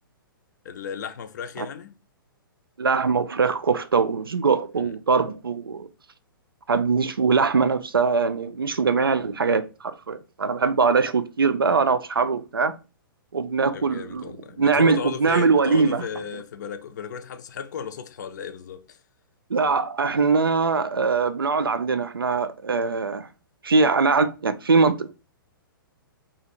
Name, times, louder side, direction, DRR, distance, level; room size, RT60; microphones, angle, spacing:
voice 1, 0.6-2.0 4.8-4.9 13.7-19.0, left 7 dB, 50° left, 0.5 m, -35 dB
voice 2, 2.8-5.9 6.7-12.8 13.3-14.3 14.6-16.1 19.5-23.3 23.6-25.1, right 4 dB, 75° right, 0.4 m, -22 dB
2.8 x 2.7 x 4.2 m
figure-of-eight pair, 115°, 12 cm